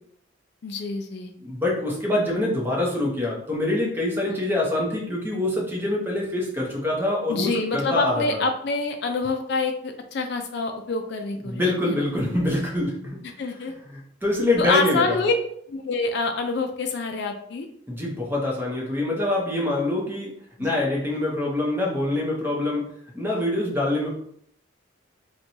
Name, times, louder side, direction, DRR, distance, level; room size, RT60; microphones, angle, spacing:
voice 1, 0.6-1.3 4.3-4.4 7.3-12.0 13.4-13.7 14.6-15.3 15.7-17.7 20.6-20.7, left 3 dB, 55° left, 5 dB, 0.3 m, -26 dB
voice 2, 1.4-8.4 11.4-13.2 13.9-15.2 17.9-20.3 20.6-22.9 23.1-24.1, left 1 dB, 10° right, -3 dB, 0.7 m, -25 dB
4.3 x 2.2 x 2.7 m, 0.67 s
head